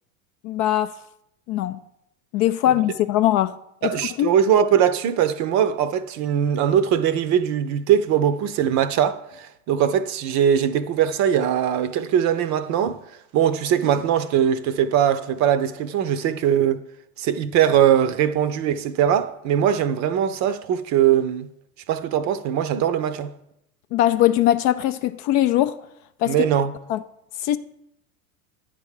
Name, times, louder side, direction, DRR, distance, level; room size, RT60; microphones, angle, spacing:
voice 1, 0.4-0.9 1.5-1.8 2.3-3.6 3.8-4.3 23.9-25.8 26.2-26.5 26.9-27.0 27.4-27.6, left 13 dB, 40° left, 0.4 m, -21 dB
voice 2, 3.8-13.0 13.3-16.8 17.2-21.5 21.9-23.3 26.3-26.7, right 9 dB, 40° right, 0.6 m, -21 dB
9.5 x 3.7 x 6.5 m
hypercardioid pair, 85°, 43 cm